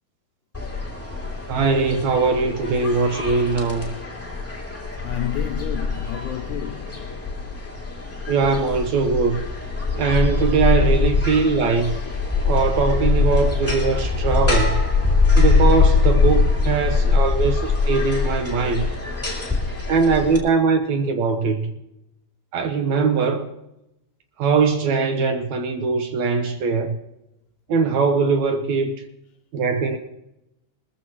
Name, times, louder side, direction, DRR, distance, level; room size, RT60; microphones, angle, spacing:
sound 1, 0.5-20.4, left 4 dB, 5° left, 1.8 m, -22 dB
voice 1, 1.5-3.9 8.3-9.4 9.9-11.9 12.4-14.8 15.3-18.9 19.9-21.7 22.5-23.5 24.4-27.0 27.7-29.0 29.5-30.0, right 4 dB, 75° right, 1.7 m, -21 dB
voice 2, 5.0-7.2, left 12 dB, 80° left, 1.7 m, -31 dB
21.0 x 14.0 x 3.0 m
omnidirectional pair, 4.3 m